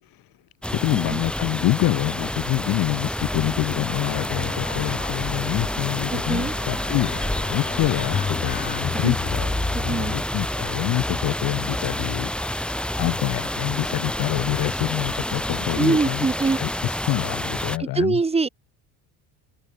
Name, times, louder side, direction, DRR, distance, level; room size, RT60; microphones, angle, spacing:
sound 1, 0.6-17.8, left 1 dB, ahead, 4.0 m, -28 dB
voice 1, 0.7-9.5 9.8-16.3 16.6-18.2, left 16 dB, 60° left, 6.0 m, -26 dB
sound 2, 4.3-10.2, left 6 dB, 25° left, 4.5 m, -33 dB
voice 2, 6.1-6.5 8.9-9.2 9.7-10.1 15.8-16.6 17.8-18.5, right 4 dB, 15° right, 5.2 m, -23 dB
cardioid pair, 150°, 39 cm